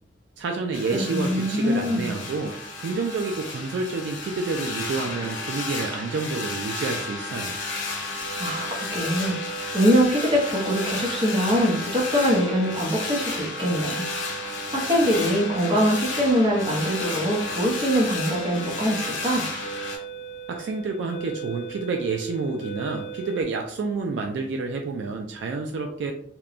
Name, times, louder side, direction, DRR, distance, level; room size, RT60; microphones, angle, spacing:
voice 1, 0.4-7.6 20.5-26.1, right 4 dB, 65° right, 3 dB, 0.3 m, -29 dB
sound 1, 0.7-20.0, left 3 dB, 90° left, 0.7 m, -32 dB
voice 2, 0.9-2.1 8.4-9.4 9.7-14.0 14.7-19.4, equal, 30° right, -2 dB, 0.7 m, -23 dB
sound 2, 8.2-23.4, right 6 dB, 50° right, 1.0 m, -39 dB
2.9 x 2.2 x 2.4 m, 0.62 s
head